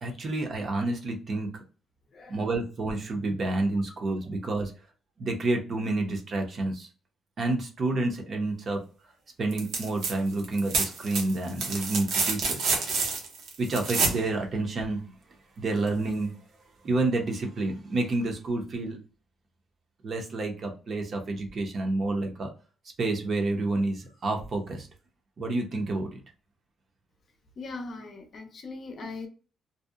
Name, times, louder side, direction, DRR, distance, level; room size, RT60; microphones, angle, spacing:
voice 1, 0.0-1.5 2.3-4.7 5.2-6.9 7.4-8.8 9.4-12.7 13.6-15.0 15.6-16.3 16.8-19.0 20.0-22.5 23.0-24.9 25.4-26.1, right 2 dB, 40° right, 0.6 m, -29 dB
sound 1, 9.5-10.1 10.4-14.2 15.9-16.0, right 4 dB, 80° right, 0.7 m, -28 dB
voice 2, 27.6-29.3, left 3 dB, 40° left, 0.4 m, -40 dB
2.6 x 2.0 x 2.3 m
cardioid pair, 160°, 0 cm